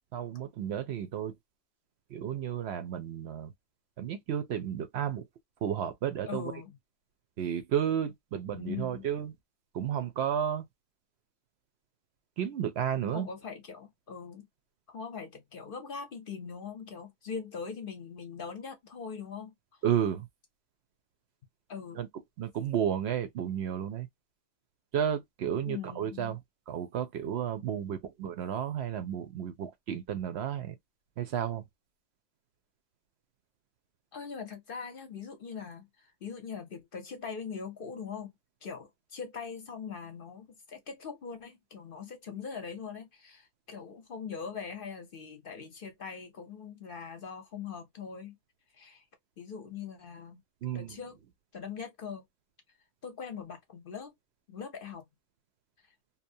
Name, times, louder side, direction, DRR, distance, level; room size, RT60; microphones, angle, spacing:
voice 1, 0.1-1.3 2.1-3.5 4.0-5.2 5.6-6.5 7.4-9.3 9.7-10.7 12.4-13.3 19.8-20.3 22.0-22.1 22.4-24.1 24.9-26.4 26.7-30.8 31.2-31.6 50.6-51.0, right 9 dB, 65° right, 0.7 m, -32 dB
voice 2, 6.2-6.8 8.5-9.1 13.1-14.5 14.9-19.5 21.7-22.0 25.7-26.4 34.1-38.3 38.6-48.4 48.7-49.1 49.4-50.4 50.7-51.2 51.5-52.2 53.0-54.1 54.5-55.1, left 6 dB, 55° left, 0.7 m, -41 dB
2.8 x 2.0 x 2.6 m
omnidirectional pair, 1.3 m